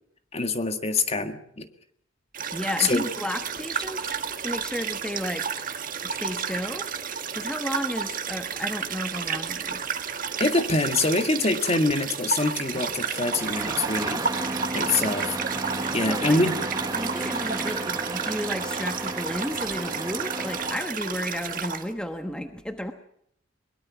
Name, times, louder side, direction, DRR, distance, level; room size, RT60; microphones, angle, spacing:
voice 1, 0.3-1.7 2.8-3.0 10.4-14.2 14.7-15.4 15.9-16.5, left 2 dB, 30° left, 8 dB, 1.9 m, -24 dB
sound 1, 2.3-21.9, right 6 dB, 45° right, 1.7 m, -32 dB
voice 2, 2.5-5.4 6.0-6.9 7.3-9.8 16.1-16.4 16.9-22.9, equal, 5° left, 6 dB, 1.2 m, -33 dB
Engine starting, 12.7-20.8, right 2 dB, 20° right, 1.5 m, -33 dB
22.5 x 22.5 x 6.0 m, 0.68 s
head